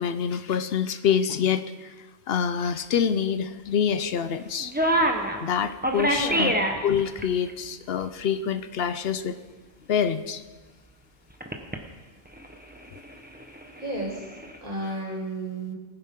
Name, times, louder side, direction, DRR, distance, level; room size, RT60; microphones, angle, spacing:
voice 1, 0.0-1.9 2.3-4.7 5.4-6.5 6.8-9.4 9.9-10.4 12.9-13.0, left 7 dB, 70° left, 10 dB, 0.9 m, -26 dB
sound 1, 4.3-4.4 4.6-5.4 5.8-7.2 7.5-7.6 7.9-8.0 11.4-11.8 12.3-14.6, right 1 dB, 10° right, 1.0 m, -26 dB
voice 2, 6.1-6.6 13.8-14.1 14.6-15.8, right 1 dB, 45° right, -4 dB, 4.1 m, -32 dB
19.5 x 9.8 x 3.8 m, 1.3 s
omnidirectional pair, 1.1 m